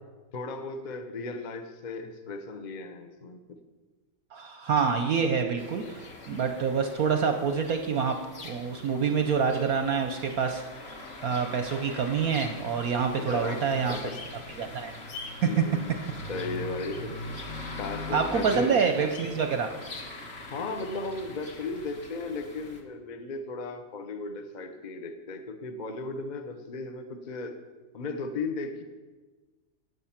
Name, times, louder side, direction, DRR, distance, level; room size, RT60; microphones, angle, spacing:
voice 1, 0.3-3.6 13.2-14.2 15.4-17.2 17.8-18.7 20.5-27.6 27.9-28.8, left 3 dB, 55° left, 7 dB, 0.4 m, -36 dB
voice 2, 4.3-8.2 8.4-10.6 11.2-14.0 14.6-14.9 15.4-15.5 18.1-19.7, right 6 dB, 65° right, 6 dB, 0.9 m, -27 dB
sound 1, 5.6-22.8, left 2 dB, 35° left, 1.4 m, -42 dB
11.5 x 8.1 x 5.8 m, 1.3 s
omnidirectional pair, 2.1 m